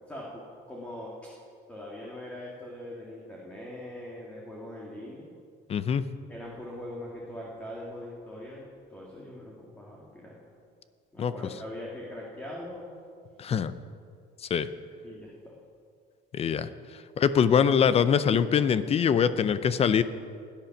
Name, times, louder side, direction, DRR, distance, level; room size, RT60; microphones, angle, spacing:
voice 1, 0.1-1.1 1.7-5.3 6.3-10.4 11.1-12.9 15.0-15.5, left 1 dB, 5° left, -4 dB, 1.9 m, -41 dB
voice 2, 5.7-6.0 11.2-11.3 13.4-13.7 14.5-14.7 16.3-16.7 17.2-20.0, left 7 dB, 30° left, 14 dB, 0.5 m, -23 dB
16.5 x 10.5 x 5.9 m, 2.2 s
cardioid pair, 160°, 21 cm